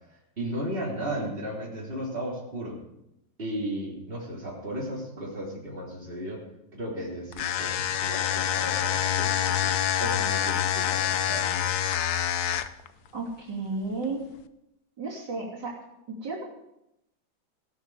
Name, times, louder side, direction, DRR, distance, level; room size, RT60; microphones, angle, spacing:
voice 1, 0.1-2.8 3.4-6.4 6.7-11.7, equal, 30° right, -4 dB, 3.8 m, -35 dB
sound 1, 7.3-12.9, left 10 dB, 65° left, 1.1 m, -26 dB
voice 2, 13.1-14.2 15.0-15.8 16.1-16.4, right 3 dB, 65° right, -4 dB, 3.5 m, -33 dB
16.5 x 12.0 x 4.9 m, 0.86 s
omnidirectional pair, 2.0 m